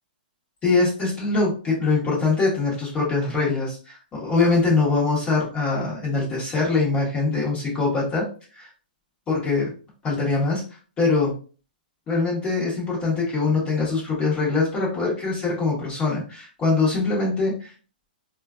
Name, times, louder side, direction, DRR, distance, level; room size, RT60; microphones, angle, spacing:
voice 1, 0.6-8.2 8.6-8.7 9.3-9.7 10.0-10.6 11.0-11.3 12.1-17.7, left 3 dB, 20° left, -5 dB, 1.1 m, -23 dB
3.8 x 2.3 x 2.4 m, 0.38 s
hypercardioid pair, 145°, 5 cm